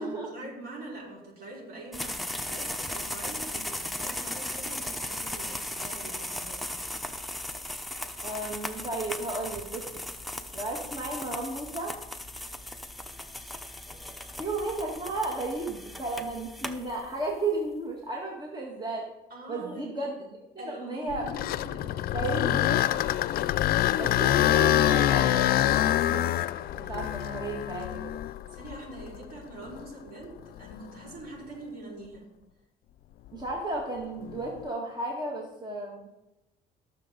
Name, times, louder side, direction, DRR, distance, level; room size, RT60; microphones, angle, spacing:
voice 1, 0.0-6.7 19.3-19.9 20.6-22.9 28.5-32.2, right 2 dB, 65° right, -5 dB, 5.1 m, -44 dB
sound 1, 1.9-17.4, left 1 dB, ahead, 0.8 m, -37 dB
voice 2, 8.2-10.0 10.5-12.0 14.4-19.1 19.5-21.3 22.1-23.1 24.0-25.7 26.0-26.4 26.7-28.2 33.3-36.1, right 2 dB, 25° right, -1 dB, 1.9 m, -34 dB
sound 2, 21.1-29.2 29.7-29.8 30.6-30.7 34.2-34.6, left 13 dB, 65° left, 0.5 m, -25 dB
19.5 x 6.8 x 3.9 m, 0.96 s
cardioid pair, 110°, 17 cm